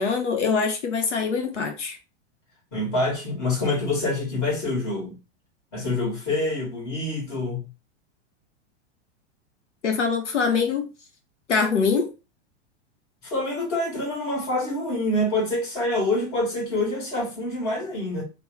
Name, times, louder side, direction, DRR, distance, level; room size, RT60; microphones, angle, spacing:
voice 1, 0.0-2.0 9.8-10.9 11.5-12.1, left 5 dB, 90° left, 0.7 m, -23 dB
voice 2, 2.7-5.2 5.7-7.7 13.2-18.2, left 2 dB, 45° left, 1.5 m, -26 dB
2.9 x 2.0 x 3.3 m
hypercardioid pair, 100°, 35 cm